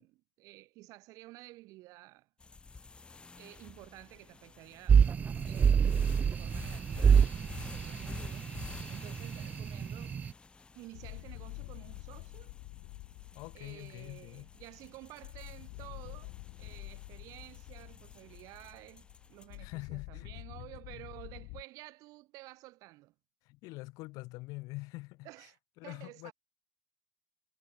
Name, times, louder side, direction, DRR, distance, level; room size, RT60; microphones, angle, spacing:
voice 1, 0.0-2.3 3.4-8.5 8.9-10.2 10.7-12.5 13.5-23.1 25.2-26.3, right 20 dB, 70° right, 6.4 m, -52 dB
sound 1, 2.4-19.8, left 4 dB, 15° left, 6.8 m, -50 dB
sound 2, 4.9-10.3, right 7 dB, 25° right, 0.4 m, -27 dB
sound 3, 10.9-21.6, left 33 dB, 90° left, 0.9 m, -48 dB
voice 2, 13.3-14.5 19.6-20.3 20.9-21.0 23.4-25.5 25.8-26.3, left 22 dB, 75° left, 2.7 m, -44 dB
cardioid pair, 150°, 6 cm